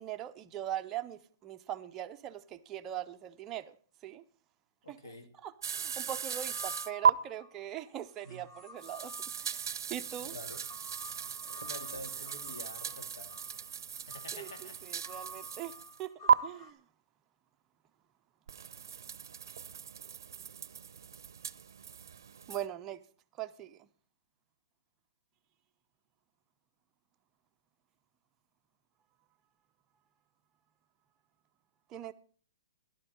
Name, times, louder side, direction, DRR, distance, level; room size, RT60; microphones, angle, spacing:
voice 1, 0.0-3.8 4.0-4.2 4.9-5.0 5.4-9.1 9.4-10.3 14.3-14.5 14.8-16.8 22.5-23.0 23.4-23.9 31.9-32.1, right 11 dB, 15° right, 0.4 m, -41 dB
voice 2, 4.8-5.3 8.2-8.4 10.2-10.6 11.6-13.7 14.1-14.8, left 1 dB, 90° left, 2.3 m, -48 dB
sound 1, 5.6-7.1 8.8-16.0 16.3-16.4 18.5-22.7, right 7 dB, 65° right, 0.5 m, -35 dB
sound 2, 6.3-7.5 8.1-16.7, left 1 dB, 15° left, 0.8 m, -51 dB
12.5 x 11.5 x 4.2 m
hypercardioid pair, 170°, 2 cm